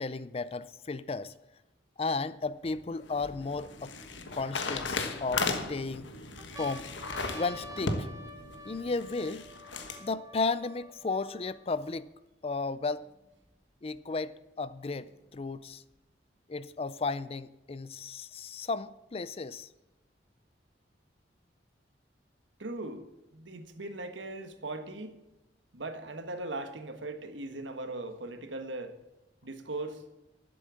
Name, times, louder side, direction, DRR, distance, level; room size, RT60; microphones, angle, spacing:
voice 1, 0.0-1.3 2.0-3.9 4.3-6.1 6.5-6.9 7.3-8.1 8.6-9.4 10.0-12.1 12.4-13.1 13.8-15.8 16.5-19.7, left 3 dB, 35° left, 0.4 m, -34 dB
sound 1, 2.7-10.0, left 3 dB, 90° left, 1.4 m, -36 dB
sound 2, 3.1-4.1 4.8-5.6 6.0-6.1 6.4-12.0 12.7-12.8 13.0-14.0 14.9-16.0, equal, 20° right, 1.0 m, -49 dB
voice 2, 22.6-23.1 23.3-25.2 25.7-28.9 29.4-30.0, right 2 dB, 90° right, 1.4 m, -39 dB
11.5 x 7.8 x 7.6 m
head